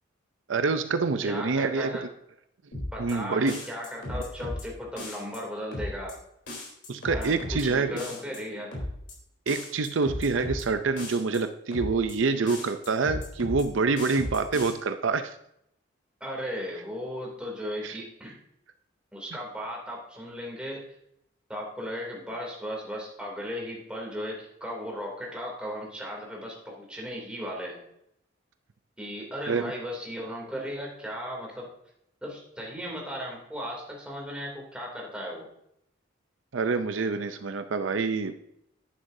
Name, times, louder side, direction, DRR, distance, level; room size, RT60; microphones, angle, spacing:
voice 1, 0.5-2.0 3.0-3.6 6.9-8.0 9.5-15.4 17.8-18.0 29.5-29.7 36.5-38.3, right 4 dB, 75° right, 9 dB, 0.6 m, -26 dB
voice 2, 1.2-2.1 2.9-6.2 7.1-8.8 16.2-18.4 19.1-20.8 21.5-27.9 29.0-31.7 32.2-35.5, equal, 5° right, -2 dB, 2.8 m, -36 dB
sound 1, 2.7-3.1 3.5-4.6 5.0-5.4 5.7-6.1 6.5-7.6 8.0-8.4 8.7-9.1 9.5-10.6 11.0-11.4 11.7-12.1 12.5-13.6 14.0-14.7, left 1 dB, 60° left, 3.6 m, -35 dB
11.0 x 9.6 x 2.7 m, 0.76 s
head